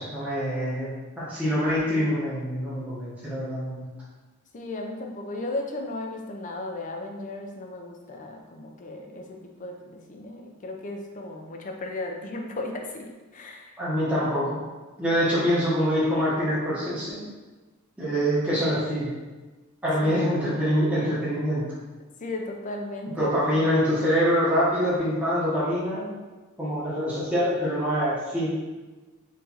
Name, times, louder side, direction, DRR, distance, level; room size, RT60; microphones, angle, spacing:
voice 1, 0.0-3.8 13.8-14.6 15.0-17.2 18.0-19.1 19.8-21.6 23.2-26.1 26.6-28.5, equal, 5° right, -11 dB, 1.0 m, -25 dB
voice 2, 4.5-13.8 20.0-20.2 22.2-23.7, left 2 dB, 35° left, 2 dB, 0.5 m, -35 dB
4.4 x 3.1 x 2.8 m, 1.2 s
head